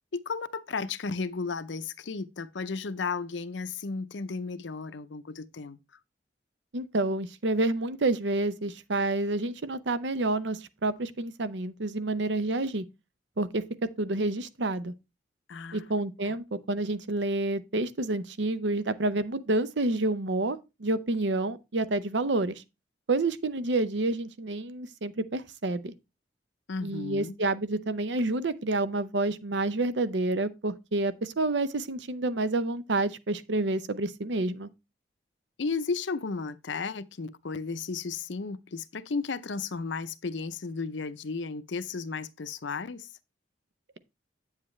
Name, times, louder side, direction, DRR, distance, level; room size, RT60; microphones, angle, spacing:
voice 1, 0.1-5.8 15.5-15.9 16.2-16.4 26.7-27.4 35.6-43.1, left 4 dB, 75° left, 0.6 m, -34 dB
voice 2, 6.7-12.8 13.4-13.6 14.0-14.9 15.7-22.5 23.1-25.9 26.8-34.7, right 2 dB, 70° right, 0.7 m, -29 dB
8.7 x 7.4 x 3.2 m
head